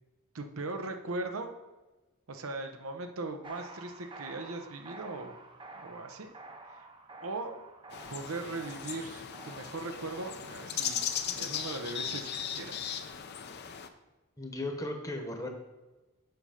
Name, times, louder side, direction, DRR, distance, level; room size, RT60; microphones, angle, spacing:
voice 1, 0.3-1.6 2.3-5.4 5.7-6.3 6.7-6.9 7.2-7.6 8.1-13.0, right 2 dB, 90° right, 6 dB, 0.8 m, -39 dB
sound 1, 3.4-12.1, right 2 dB, 25° right, 0.7 m, -50 dB
sound 2, 7.9-13.9, left 8 dB, 50° left, 0.6 m, -37 dB
voice 2, 14.4-15.5, left 1 dB, 15° left, 3 dB, 1.0 m, -36 dB
8.0 x 5.6 x 5.0 m, 1.1 s
head